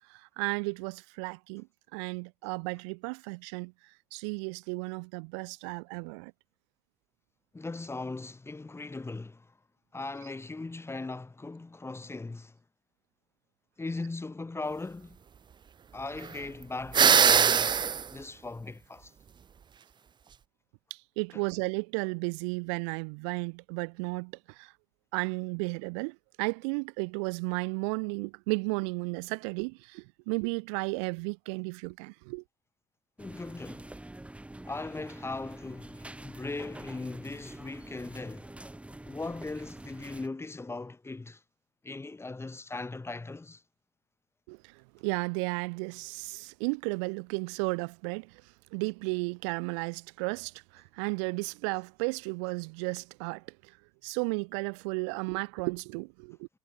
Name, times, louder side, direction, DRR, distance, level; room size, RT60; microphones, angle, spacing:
voice 1, 0.0-1.7 1.9-3.7 4.1-6.3 20.9-24.7 25.1-32.4 44.5-44.7 45.0-48.4 48.7-53.4 54.0-56.5, right 35 dB, 85° right, 3.2 m, -34 dB
voice 2, 7.5-9.5 9.9-12.5 13.8-15.2 15.9-17.8 18.1-19.1 21.3-21.4 33.2-33.9 34.6-38.5 39.1-41.4 41.8-43.6, left 3 dB, 15° left, 5.5 m, -39 dB
sound 1, 16.9-18.0, right 7 dB, 30° right, 0.6 m, -21 dB
sound 2, 33.2-40.3, right 1 dB, 10° right, 5.3 m, -46 dB
supercardioid pair, 85°, 15 cm